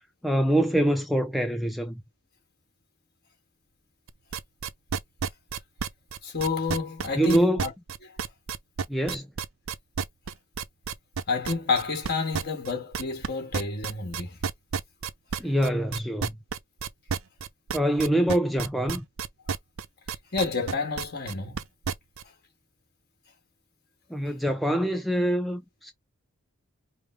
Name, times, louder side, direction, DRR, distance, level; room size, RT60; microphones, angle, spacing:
voice 1, 0.2-2.0 7.2-7.6 8.9-9.3 15.4-16.3 17.7-19.1 24.1-25.9, right 1 dB, ahead, 0.4 m, -25 dB
sound 1, 4.1-22.2, right 6 dB, 70° right, 0.5 m, -31 dB
voice 2, 6.2-7.7 8.0-8.1 11.3-14.4 20.3-21.6, left 4 dB, 50° left, 1.5 m, -29 dB
5.1 x 2.1 x 3.2 m
head